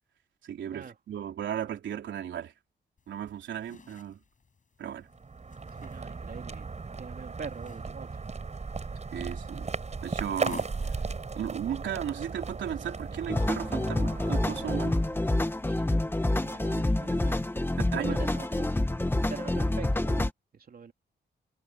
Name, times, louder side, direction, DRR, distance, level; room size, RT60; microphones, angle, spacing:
voice 1, 0.4-2.5 3.1-4.2 4.8-5.1 9.1-9.7 10.0-10.7 11.4-15.0 16.7-16.8 17.1-17.2 17.8-18.2, right 9 dB, 90° right, 3.4 m, -35 dB
sound 1, 3.0-13.3, left 5 dB, 45° left, 7.0 m, -52 dB
sound 2, 5.0-15.7, right 4 dB, 35° right, 5.7 m, -37 dB
voice 2, 5.8-6.7 7.0-8.2 15.7-16.1 16.4-17.4 18.0-18.7 19.3-20.3 20.5-20.9, right 6 dB, 50° right, 2.8 m, -43 dB
sound 3, 13.3-20.3, left 1 dB, 10° left, 1.8 m, -27 dB
cardioid pair, 95°, 19 cm